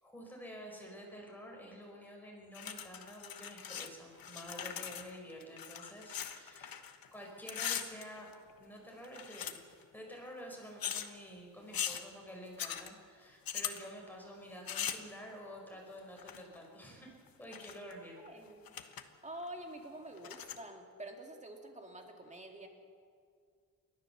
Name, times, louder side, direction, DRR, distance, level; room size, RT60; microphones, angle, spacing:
voice 1, 0.0-6.8 7.1-8.3 8.6-9.6 9.9-18.2, equal, 5° left, -1 dB, 4.7 m, -49 dB
sound 1, 2.5-3.9 4.1-7.1 7.4-8.6 9.0-9.8 10.8-11.1 11.7-12.0 12.6-12.9 13.4-13.8 14.7-15.1 16.2-16.6 17.3-17.9 18.3-18.4 18.7-19.0 19.4-19.5 20.2-20.6, left 9 dB, 85° left, 1.3 m, -40 dB
voice 2, 18.2-22.7, right 1 dB, 20° right, 3 dB, 2.5 m, -48 dB
29.0 x 13.0 x 7.0 m, 2.2 s
wide cardioid pair, 145°, 35 cm